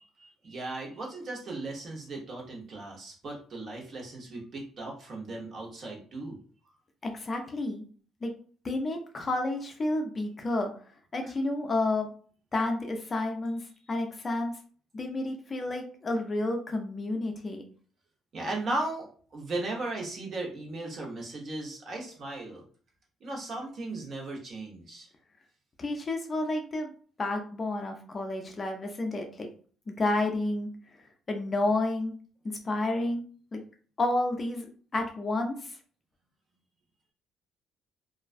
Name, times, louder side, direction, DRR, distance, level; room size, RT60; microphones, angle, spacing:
voice 1, 0.2-6.4 18.3-22.6 23.2-25.1, right 2 dB, 45° right, -1 dB, 0.9 m, -37 dB
voice 2, 7.0-7.8 8.2-8.3 8.6-10.7 11.1-12.1 12.5-14.5 14.9-17.6 25.8-26.9 27.2-29.5 29.9-30.7 31.3-32.1 32.4-33.2 33.5-33.6 34.0-34.7 34.9-35.8, left 2 dB, 30° left, 4 dB, 0.4 m, -30 dB
2.3 x 2.1 x 2.5 m, 0.43 s
cardioid pair, 115°, 0 cm